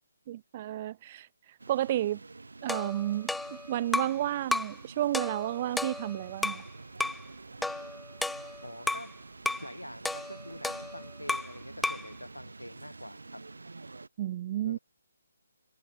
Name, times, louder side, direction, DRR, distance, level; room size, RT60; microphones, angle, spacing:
voice 1, 0.3-1.3 1.7-2.2 2.6-3.3 3.7-6.6 14.2-14.8, right 13 dB, 30° right, 1.3 m, -31 dB
sound 1, 1.6-14.1, right 3 dB, 65° right, 3.8 m, -48 dB
sound 2, 2.7-4.2 4.5-4.8 5.1-6.7 7.0-7.2 7.6-9.1 9.5-9.7 10.0-11.6 11.8-12.1, left 2 dB, ahead, 0.7 m, -33 dB
voice 2, 8.6-9.1 9.6-13.4 14.6-14.8, equal, 90° left, 5.0 m, -45 dB
figure-of-eight pair, 145°, 0 cm